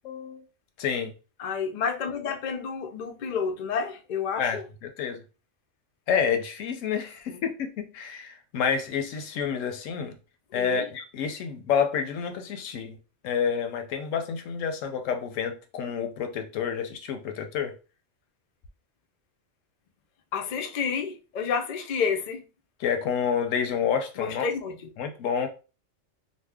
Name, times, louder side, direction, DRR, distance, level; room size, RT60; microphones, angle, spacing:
voice 1, 0.0-0.4 0.8-1.1 4.4-5.2 6.1-10.2 10.5-13.0 13.2-17.7 22.8-24.5 25.0-25.5, left 7 dB, 85° left, 1.0 m, -29 dB
voice 2, 1.4-4.7 7.3-7.4 10.5-10.9 20.3-22.4 24.2-24.8, left 6 dB, 65° left, 0.4 m, -30 dB
2.6 x 2.1 x 3.4 m
omnidirectional pair, 1.3 m